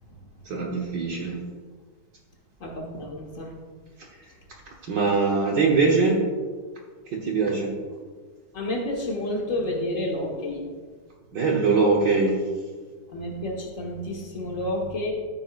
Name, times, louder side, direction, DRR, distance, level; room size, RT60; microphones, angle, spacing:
voice 1, 0.4-1.4 4.8-6.2 7.1-7.7 11.3-12.4 14.4-14.5, right 4 dB, 70° right, 0 dB, 1.0 m, -22 dB
voice 2, 2.6-3.5 8.5-10.7 13.1-15.1, left 1 dB, 40° left, -1 dB, 1.1 m, -30 dB
13.5 x 9.1 x 2.5 m, 1.5 s
omnidirectional pair, 3.4 m